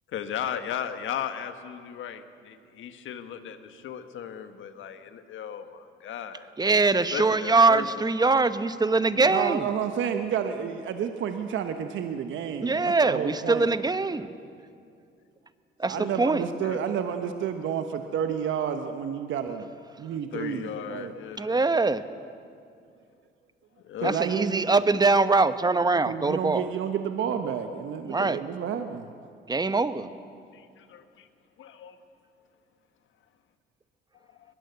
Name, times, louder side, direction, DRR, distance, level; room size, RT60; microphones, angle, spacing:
voice 1, 0.1-6.5 7.1-7.9 15.9-16.1 16.6-16.8 20.3-21.6 23.8-24.2 30.5-31.3 31.6-32.0, left 9 dB, 75° left, 9 dB, 1.6 m, -36 dB
voice 2, 6.6-9.7 12.6-14.3 15.8-16.4 21.4-22.0 24.0-26.7 28.0-28.4 29.5-30.1, right 3 dB, 20° right, 13 dB, 1.0 m, -23 dB
voice 3, 9.2-13.7 15.9-19.7 20.0-21.1 24.0-24.7 26.1-29.1, right 8 dB, 75° right, 7 dB, 1.2 m, -30 dB
22.0 x 21.0 x 8.1 m, 2.3 s
cardioid pair, 90°, 20 cm